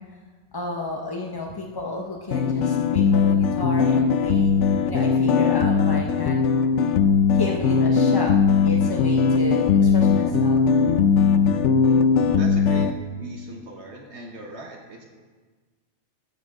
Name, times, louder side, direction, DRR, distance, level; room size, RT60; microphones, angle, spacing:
voice 1, 0.5-6.4 7.3-8.3 8.6-10.7, left 2 dB, 25° left, 0 dB, 0.5 m, -32 dB
sound 1, 2.3-12.9, left 6 dB, 70° left, 0.8 m, -19 dB
voice 2, 12.3-15.0, right 2 dB, 65° right, 0 dB, 1.3 m, -39 dB
13.5 x 6.1 x 4.9 m, 1.4 s
omnidirectional pair, 1.3 m